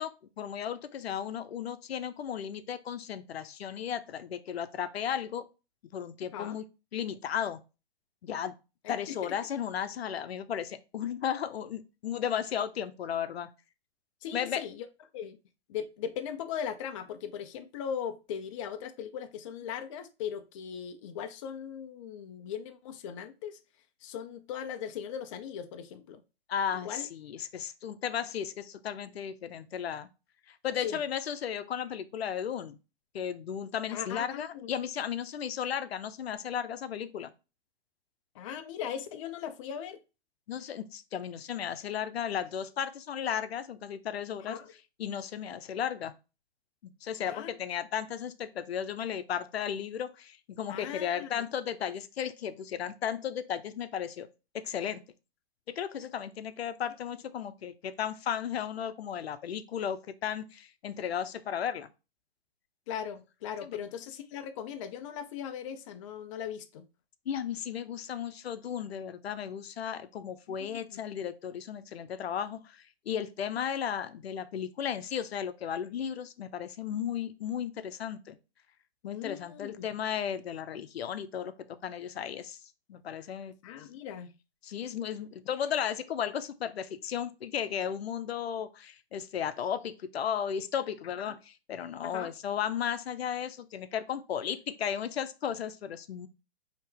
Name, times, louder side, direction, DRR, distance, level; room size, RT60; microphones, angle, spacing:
voice 1, 0.0-5.5 5.9-6.6 6.9-7.6 8.2-8.5 8.9-13.5 14.3-14.6 26.5-30.1 30.5-32.8 33.1-37.3 40.5-44.6 45.0-46.1 47.0-54.3 54.5-55.0 55.7-61.9 63.6-63.8 67.3-78.4 79.0-81.5 81.8-82.6 82.9-83.5 84.6-96.3, left 8 dB, 80° left, 0.6 m, -35 dB
voice 2, 8.8-9.3 14.2-14.9 15.1-15.4 15.7-23.6 24.0-26.2 26.7-27.1 30.8-31.0 33.9-34.7 38.3-40.0 44.4-44.7 47.3-47.6 50.7-51.4 62.9-66.8 70.5-71.0 79.0-79.9 83.6-84.3 91.3-91.4 92.0-92.3, left 8 dB, 30° left, 0.4 m, -39 dB
4.4 x 2.8 x 3.3 m
hypercardioid pair, 135°, 31 cm